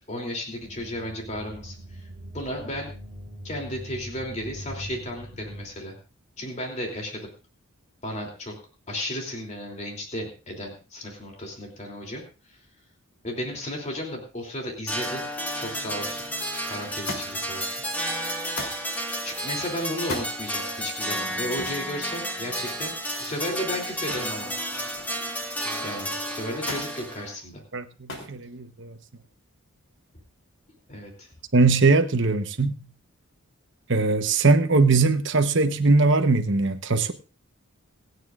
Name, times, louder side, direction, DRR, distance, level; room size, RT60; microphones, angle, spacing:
voice 1, 0.1-2.1 2.3-2.9 3.4-6.0 6.4-7.3 8.0-8.5 8.9-12.2 12.5-12.6 13.2-15.2 15.6-16.2 16.7-17.8 19.2-22.9 23.2-24.5 25.8-27.6 30.9-31.3, left 1 dB, 30° left, 3.1 m, -34 dB
sound 1, 0.6-5.7, equal, 10° right, 3.8 m, -41 dB
sound 2, 14.9-27.3, equal, 5° left, 2.3 m, -32 dB
Thump thud, 17.1-17.5 18.6-18.9 20.0-20.3 21.6-21.8 24.1-24.4 24.8-25.3 26.7-26.9 28.1-28.4 29.3-29.8 30.8-30.9, left 2 dB, 60° left, 3.4 m, -36 dB
voice 2, 27.7-29.0 31.5-32.8 33.9-37.1, right 3 dB, 55° right, 1.1 m, -21 dB
27.0 x 9.4 x 2.5 m
head